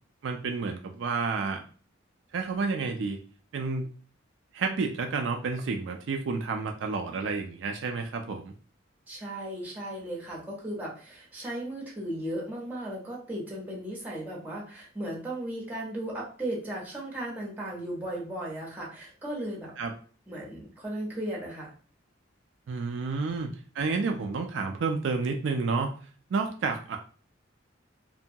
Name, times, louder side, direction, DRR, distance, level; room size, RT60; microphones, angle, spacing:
voice 1, 0.2-1.6 2.3-3.2 3.5-3.9 4.5-8.5 19.8-19.9 22.7-25.9 26.3-27.0, right 4 dB, 70° right, 4 dB, 0.4 m, -30 dB
voice 2, 9.1-19.7 20.3-21.7, right 1 dB, 10° right, -4 dB, 0.9 m, -36 dB
2.7 x 2.2 x 2.7 m, 0.41 s
head